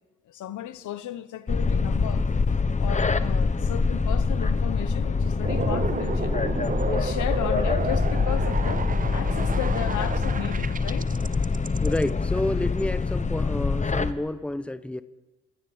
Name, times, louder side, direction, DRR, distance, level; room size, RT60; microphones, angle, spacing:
voice 1, 0.3-6.4 6.9-11.1, left 12 dB, 75° left, 1.3 m, -35 dB
sound 1, 1.5-14.1, left 4 dB, 25° left, 1.2 m, -25 dB
sound 2, 5.4-12.1, right 6 dB, 30° right, 0.8 m, -32 dB
voice 2, 11.8-15.0, left 1 dB, 5° left, 1.0 m, -29 dB
28.0 x 14.0 x 8.2 m
cardioid pair, 90°, 30 cm